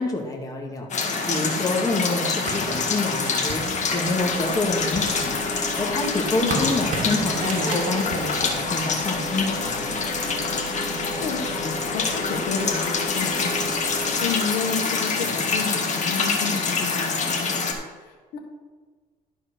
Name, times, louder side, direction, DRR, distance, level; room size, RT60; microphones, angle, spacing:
voice 1, 0.0-10.0, left 2 dB, 20° left, 0 dB, 1.9 m, -27 dB
sound 1, 0.9-17.7, left 4 dB, 45° left, 1.8 m, -26 dB
sound 2, 2.5-4.3 4.8-9.4, right 3 dB, 50° right, 1.9 m, -33 dB
sound 3, 4.0-14.2, right 2 dB, 25° right, 1.5 m, -37 dB
voice 2, 11.1-13.8 14.2-17.7 18.0-18.4, left 6 dB, 90° left, 1 dB, 1.7 m, -31 dB
12.0 x 4.5 x 6.2 m, 1.4 s
cardioid pair, 110°, 17 cm